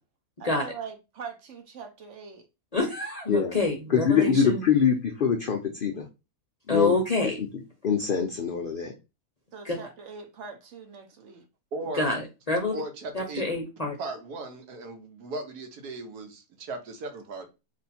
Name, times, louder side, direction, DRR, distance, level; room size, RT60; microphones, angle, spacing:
voice 1, 0.4-2.5 9.5-11.4, right 6 dB, 60° right, 6 dB, 0.9 m, -42 dB
voice 2, 2.7-4.6 6.7-7.4 9.6-9.8 12.0-12.2 12.5-12.7 13.1-13.9, left 2 dB, 40° left, 1 dB, 0.6 m, -27 dB
voice 3, 3.9-6.1 6.7-6.9 7.2-7.5 7.8-8.9, left 7 dB, 80° left, 4 dB, 0.4 m, -24 dB
voice 4, 11.7-12.1 12.7-13.5 14.0-17.5, right 2 dB, 80° right, 5 dB, 1.4 m, -37 dB
3.1 x 2.7 x 4.1 m, 0.27 s
omnidirectional pair, 1.6 m